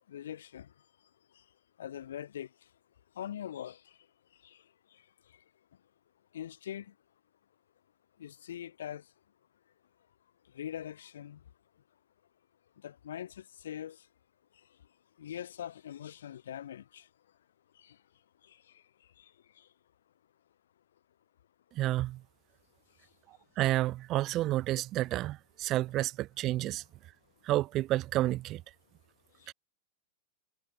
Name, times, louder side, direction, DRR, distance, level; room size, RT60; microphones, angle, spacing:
voice 1, 0.1-0.7 1.8-2.5 3.2-3.9 4.4-4.6 6.3-6.9 8.2-9.0 10.5-11.4 12.8-14.0 15.2-17.1 17.8-18.0 18.4-18.6 19.2-19.3 19.6-19.7 29.4-29.5, left 10 dB, 65° left, 1.0 m, -42 dB
voice 2, 21.8-22.2 23.6-26.8 27.4-28.6 29.5-29.6, right 15 dB, 35° right, 0.3 m, -30 dB
figure-of-eight pair, 90°, 0 cm